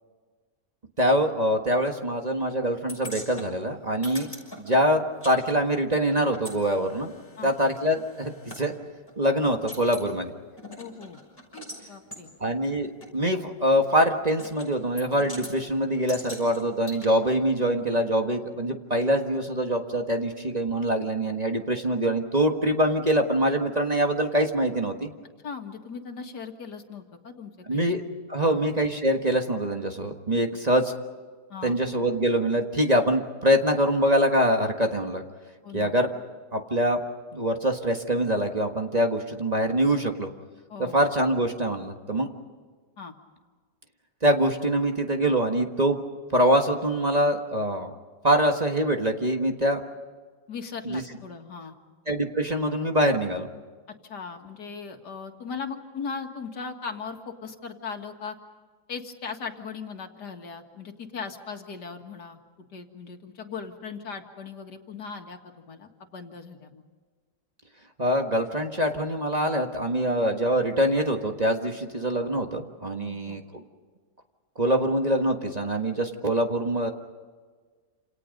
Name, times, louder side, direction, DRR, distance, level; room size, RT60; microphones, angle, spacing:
voice 1, 1.0-4.3 4.6-7.1 7.4-8.7 9.2-10.3 12.4-25.1 27.7-28.0 28.3-30.9 31.6-35.2 35.7-36.1 36.5-37.0 37.3-40.3 40.8-42.3 44.2-46.0 46.3-47.9 48.2-49.8 50.8-51.0 52.1-53.5 68.0-73.6 74.6-76.9, right 1 dB, 25° right, 3 dB, 1.5 m, -24 dB
sound 1, 2.9-5.4 5.6-8.6 9.1-9.2 9.4-10.1 10.6-11.8 12.1-12.2 13.0-13.1 14.4-14.7 15.0-15.5 16.1-17.1, left 1 dB, 15° left, 6.1 m, -42 dB
voice 2, 10.8-11.2 11.8-12.3 25.4-27.9 28.4-28.6 31.5-31.8 35.6-35.9 40.7-41.0 43.0-43.1 50.5-51.8 54.0-58.4 58.9-62.4 62.7-66.8 73.0-73.4, left 5 dB, 80° left, 4 dB, 2.4 m, -38 dB
28.5 x 28.0 x 5.3 m, 1.5 s
omnidirectional pair, 1.8 m